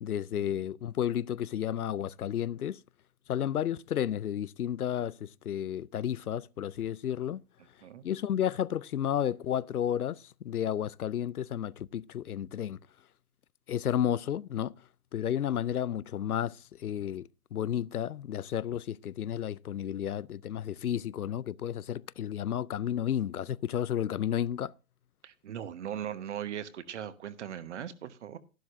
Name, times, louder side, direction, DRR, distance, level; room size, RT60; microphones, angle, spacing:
voice 1, 0.0-2.8 3.3-7.4 8.0-12.8 13.7-14.7 15.1-24.7, left 10 dB, 80° left, 0.5 m, -32 dB
voice 2, 25.2-28.4, right 9 dB, 50° right, 1.1 m, -39 dB
12.5 x 11.5 x 2.6 m
figure-of-eight pair, 120°, 44 cm